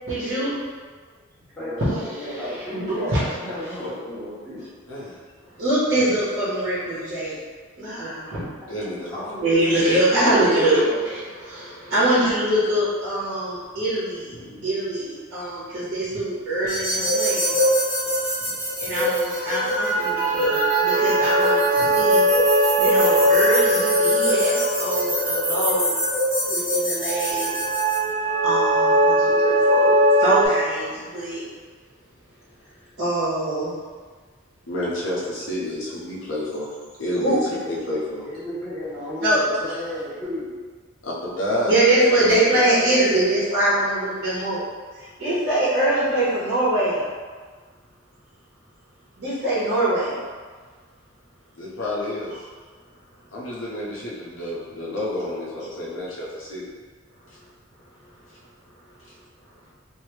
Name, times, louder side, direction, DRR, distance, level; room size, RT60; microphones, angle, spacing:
voice 1, 0.1-0.6 1.8-1.9 2.7-3.2 3.6-3.8 5.6-7.4 7.8-8.5 9.4-14.3 14.6-17.5 18.8-22.2 22.6-26.0 26.5-27.6 28.4-31.4 33.0-33.7 37.1-37.4 39.2-39.4 41.7-44.6 45.0-47.0 49.2-50.2, right 1 dB, 55° right, -11 dB, 1.2 m, -23 dB
voice 2, 1.6-4.6 9.1-11.0 37.5-37.7 38.2-40.5, left 1 dB, 20° left, -17 dB, 1.3 m, -33 dB
voice 3, 3.5-3.9 4.9-5.2 8.7-9.2 14.3-14.7 16.9-17.1 18.8-19.0 34.7-36.7 37.0-38.2 41.0-41.8 42.2-43.4 51.5-52.3 53.3-56.7, left 1 dB, 80° left, -6 dB, 0.9 m, -30 dB
sound 1, 16.7-28.0, equal, 15° right, 1.3 m, -25 dB
sound 2, 19.7-26.3 27.0-30.5, right 1 dB, 70° right, 0.8 m, -20 dB
3.2 x 2.8 x 2.9 m, 1.5 s
head